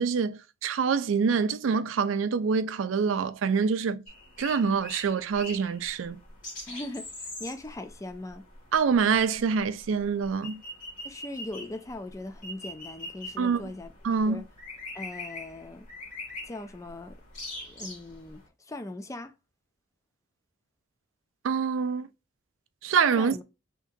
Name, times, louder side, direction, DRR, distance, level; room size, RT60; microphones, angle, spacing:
voice 1, 0.0-4.0 4.4-6.2 8.7-10.6 13.4-13.7 14.0-14.4 21.4-22.1 22.8-23.4, right 6 dB, 90° right, 0.4 m, -26 dB
sound 1, 4.1-18.5, left 2 dB, 45° left, 1.6 m, -43 dB
voice 2, 6.7-8.5 11.0-13.9 14.3-14.5 14.9-15.9 16.4-17.2 17.6-19.3 23.2-23.4, left 2 dB, 15° left, 0.4 m, -40 dB
2.9 x 2.7 x 3.5 m
head